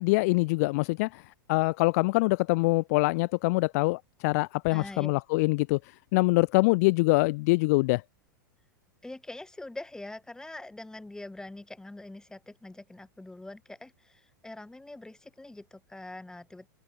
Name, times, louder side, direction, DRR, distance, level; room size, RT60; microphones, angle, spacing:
voice 1, 0.0-8.0, left 25 dB, 50° left, 0.4 m, -25 dB
voice 2, 4.7-5.1 9.0-16.7, left 2 dB, 5° left, 2.5 m, -44 dB
figure-of-eight pair, 95°, 11 cm